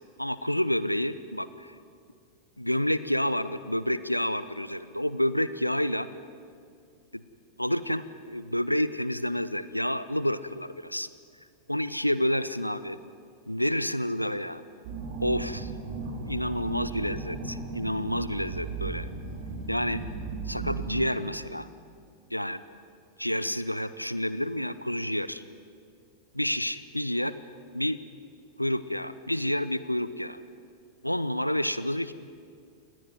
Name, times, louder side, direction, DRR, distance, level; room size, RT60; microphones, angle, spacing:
voice 1, 0.2-1.8 2.6-6.1 7.1-7.2 7.6-11.1 11.7-13.0 13.5-14.6 15.2-15.7 16.2-19.1 19.7-20.0 20.5-21.7 22.3-22.6 23.2-25.4 26.3-27.4 27.7-28.0 28.6-30.4 31.0-32.1, equal, 90° left, 15 dB, 0.7 m, -29 dB
sound 1, 14.8-21.1, right 4 dB, 50° right, 4.4 m, -36 dB
28.5 x 20.0 x 9.6 m, 2.3 s
figure-of-eight pair, 90°, 0 cm